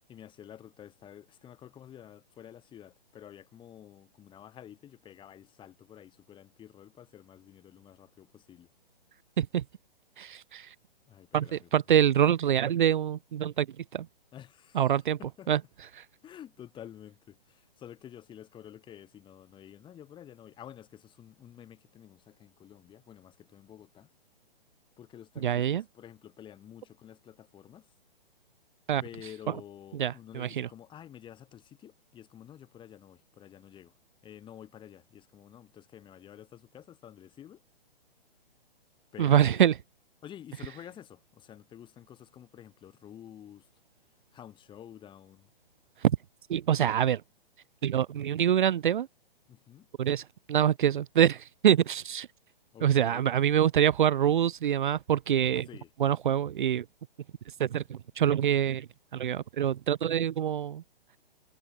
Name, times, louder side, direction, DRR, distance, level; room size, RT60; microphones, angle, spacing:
voice 1, 0.1-8.7 11.1-11.7 14.3-15.5 16.2-24.1 25.0-27.9 29.0-33.9 34.2-37.6 39.1-39.6 40.2-43.7 44.3-45.5 49.5-49.9 52.7-53.2 55.7-55.9, left 10 dB, 15° left, 6.9 m, -50 dB
voice 2, 10.2-10.7 11.3-14.1 14.7-15.2 15.5-15.6 15.9-16.0 25.4-25.8 28.9-29.0 30.0-30.7 39.2-39.8 46.0-46.2 46.5-47.2 47.8-49.1 50.0-52.3 52.8-55.7 56.0-56.8 57.6-60.8, right 10 dB, 55° right, 1.5 m, -25 dB
hypercardioid pair, 140°, 30 cm